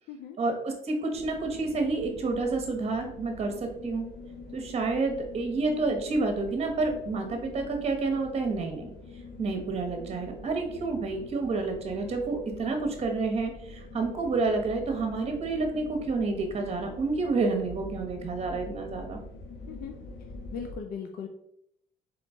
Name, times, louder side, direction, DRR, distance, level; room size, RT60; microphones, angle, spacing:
voice 1, 0.4-4.1 4.5-8.9 9.4-19.2, right 3 dB, 40° right, 4 dB, 1.1 m, -29 dB
sound 1, 1.1-20.8, left 3 dB, 85° left, 0.9 m, -45 dB
voice 2, 20.5-21.3, left 6 dB, 60° left, 4 dB, 0.5 m, -38 dB
3.8 x 3.4 x 3.6 m, 0.73 s
cardioid pair, 110°, 17 cm